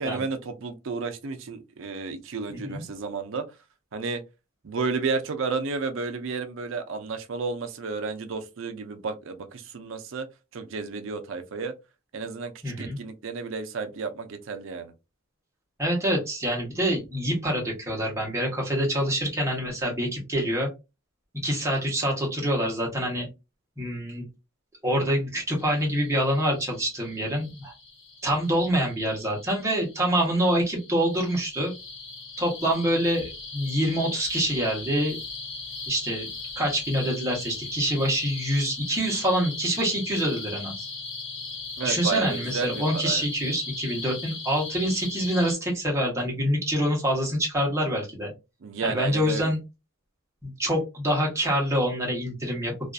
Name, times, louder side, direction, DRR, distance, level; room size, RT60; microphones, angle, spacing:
voice 1, 0.0-3.5 3.9-4.2 4.6-10.3 10.5-11.7 12.1-12.5 12.8-14.9 41.8-43.3 48.6-49.5, right 4 dB, 60° right, 0.5 m, -32 dB
voice 2, 2.5-2.8 12.6-13.0 15.8-20.7 21.4-23.3 23.8-24.2 24.8-27.7 28.2-31.7 32.4-35.2 35.9-36.3 36.6-40.9 41.8-48.3 48.8-49.6 50.4-52.9, equal, 15° right, 0.9 m, -26 dB
sound 1, 25.6-45.5, left 4 dB, 60° left, 0.8 m, -39 dB
2.5 x 2.4 x 2.3 m
head